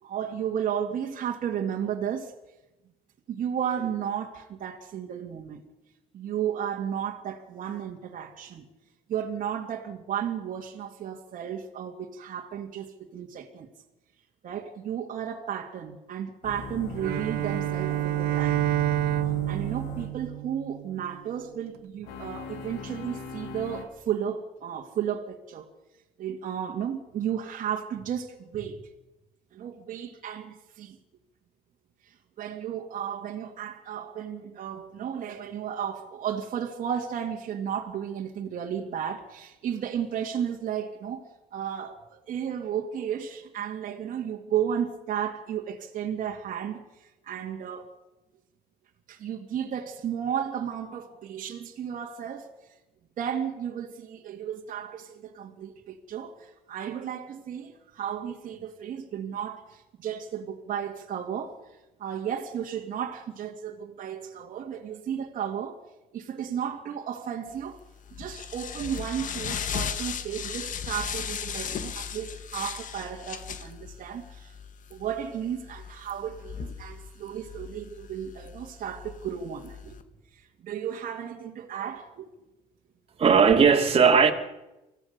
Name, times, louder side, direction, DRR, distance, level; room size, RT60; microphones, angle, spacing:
voice 1, 0.0-2.3 3.3-5.6 6.1-8.6 9.1-13.7 14.4-18.6 19.5-25.7 26.2-28.9 29.5-31.0 32.4-41.2 41.5-47.9 49.1-52.5 53.2-61.6 62.0-65.8 66.1-67.8 68.2-74.5 74.9-80.0 80.3-82.3, right 9 dB, 55° right, 2.3 m, -33 dB
sound 1, 16.4-20.1 22.0-23.8, left 4 dB, 90° left, 3.1 m, -40 dB
Bowed string instrument, 17.0-21.2, right 15 dB, 75° right, 1.0 m, -28 dB
sound 2, 67.6-80.0, left 7 dB, 55° left, 1.6 m, -37 dB
voice 2, 83.2-84.3, right 6 dB, 35° right, 2.8 m, -18 dB
24.5 x 16.0 x 6.8 m
cardioid pair, 90°, 16 cm